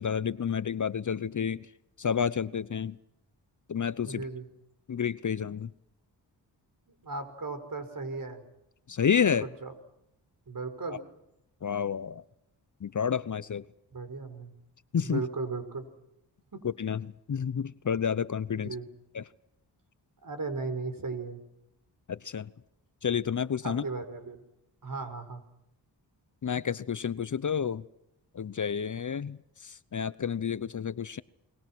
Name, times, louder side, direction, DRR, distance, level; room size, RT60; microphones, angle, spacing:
voice 1, 0.0-1.7 2.0-3.0 3.7-4.3 4.9-5.7 8.9-9.5 10.9-11.0 11.6-12.2 12.8-13.7 14.9-15.2 16.6-18.7 19.1-19.2 22.1-22.5 23.0-23.8 26.4-27.8 28.3-31.2, left 7 dB, 45° left, 0.9 m, -30 dB
voice 2, 4.0-4.5 7.0-8.4 9.6-9.7 10.5-11.0 13.9-14.5 15.0-15.8 16.5-16.6 18.6-18.9 20.2-21.4 23.6-24.4 24.8-25.4, right 3 dB, 50° right, 5.6 m, -36 dB
30.0 x 22.5 x 6.2 m
cardioid pair, 45°, 43 cm